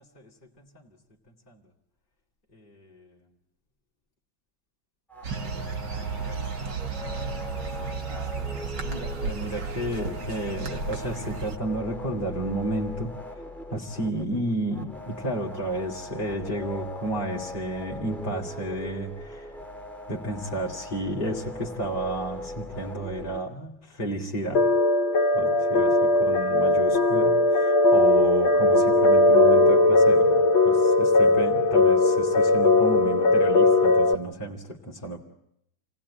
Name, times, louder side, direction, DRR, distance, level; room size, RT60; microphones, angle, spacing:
voice 1, 0.6-0.9 1.5-1.6 2.5-3.1 8.3-13.4 13.7-19.6 20.1-24.7 25.3-35.2, right 1 dB, 25° left, -4 dB, 2.7 m, -32 dB
sound 1, 5.1-23.4, left 1 dB, ahead, 1.9 m, -40 dB
sound 2, 5.2-11.6, right 5 dB, 60° right, 2.4 m, -33 dB
sound 3, 24.5-34.1, left 2 dB, 80° left, 2.1 m, -19 dB
28.5 x 19.5 x 10.0 m, 0.78 s
omnidirectional pair, 2.1 m